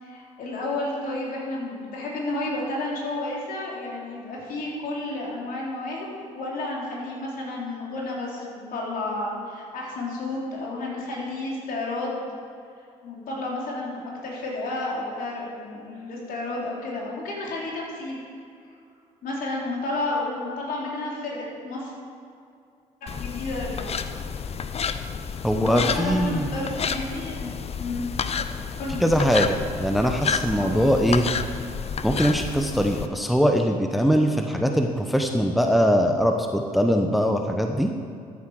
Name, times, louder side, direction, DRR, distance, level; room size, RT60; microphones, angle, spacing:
voice 1, 0.0-12.2 12.8-18.2 19.2-21.9 23.0-24.0 25.5-28.1 28.8-29.0 30.6-30.9, left 2 dB, 60° left, -3 dB, 3.4 m, -31 dB
sound 1, 23.1-33.1, left 6 dB, 40° left, 0.7 m, -30 dB
voice 2, 25.4-26.5 29.0-31.2 32.0-37.9, equal, ahead, 4 dB, 1.0 m, -22 dB
13.5 x 8.4 x 4.9 m, 2.4 s
hypercardioid pair, 55°, 16 cm